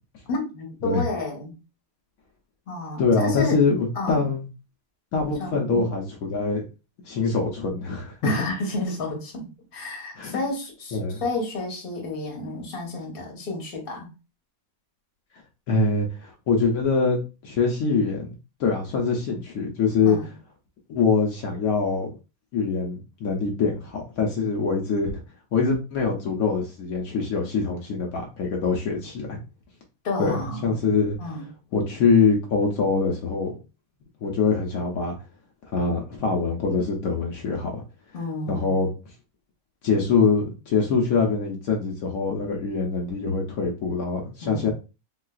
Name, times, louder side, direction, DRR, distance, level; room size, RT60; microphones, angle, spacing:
voice 1, 0.3-1.6 2.7-3.6 3.9-4.2 5.4-5.9 8.2-14.1 20.0-20.3 30.0-30.8 31.2-31.5 38.1-38.9 44.4-44.7, left 2 dB, 40° left, 0 dB, 1.1 m, -31 dB
voice 2, 3.0-4.5 5.1-6.6 7.0-8.3 10.2-10.4 10.9-11.2 15.7-18.3 18.6-20.2 20.9-22.1 22.5-25.1 25.5-29.4 30.2-31.2 31.7-33.5 34.2-35.1 35.7-37.8 38.5-38.9 39.8-44.7, left 4 dB, 75° left, 0 dB, 1.1 m, -24 dB
3.9 x 2.3 x 2.3 m, 0.30 s
omnidirectional pair, 1.5 m